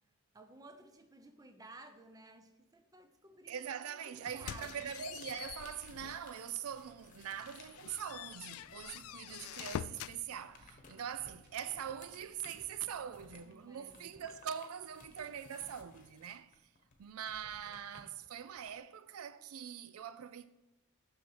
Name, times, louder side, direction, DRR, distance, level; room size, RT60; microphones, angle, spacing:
voice 1, 0.3-3.6 4.0-4.8 13.5-14.2, right 2 dB, 15° right, 0.6 m, -55 dB
voice 2, 3.5-16.6 17.0-20.5, right 8 dB, 80° right, 0.4 m, -43 dB
sound 1, 4.3-6.3 6.8-6.9 7.4-10.2, left 9 dB, 75° left, 0.3 m, -45 dB
sound 2, 4.3-9.4 9.7-18.8, left 3 dB, 35° left, 1.1 m, -60 dB
sound 3, 6.6-13.4, equal, 50° right, 1.4 m, -66 dB
7.0 x 6.2 x 4.6 m
head